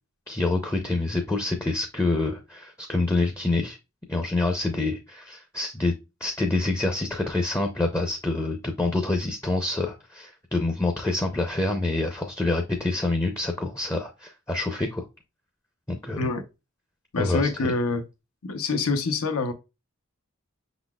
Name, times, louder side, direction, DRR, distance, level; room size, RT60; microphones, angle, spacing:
voice 1, 0.3-3.8 4.1-5.9 6.2-15.1 15.9-16.3 17.2-17.7, left 2 dB, 10° left, 0.5 m, -26 dB
voice 2, 17.1-18.0 18.4-19.5, left 3 dB, 85° left, 0.7 m, -26 dB
5.6 x 4.0 x 2.3 m
head